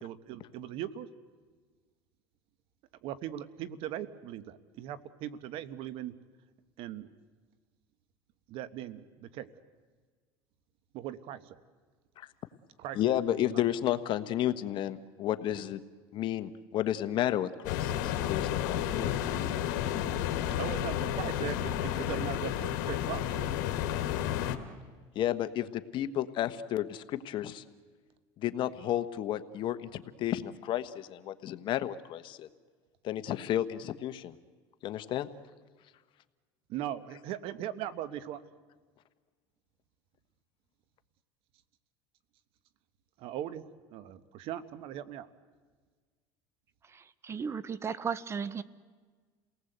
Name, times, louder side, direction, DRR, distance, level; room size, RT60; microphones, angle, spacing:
voice 1, 0.0-1.1 3.0-6.1 6.8-7.1 8.5-9.5 10.9-11.6 12.8-13.6 20.6-23.5 36.7-38.4 43.2-43.7 43.9-45.3, right 11 dB, 65° right, 1.2 m, -39 dB
voice 2, 12.9-15.8 16.1-19.1 25.1-27.6 28.4-32.5 33.0-34.3 34.8-35.3, left 12 dB, 50° left, 1.2 m, -32 dB
sound 1, 17.6-24.6, left 11 dB, 85° left, 1.8 m, -31 dB
voice 3, 46.9-48.6, right 6 dB, 25° right, 0.9 m, -35 dB
29.0 x 18.5 x 8.0 m
supercardioid pair, 115°, 10 cm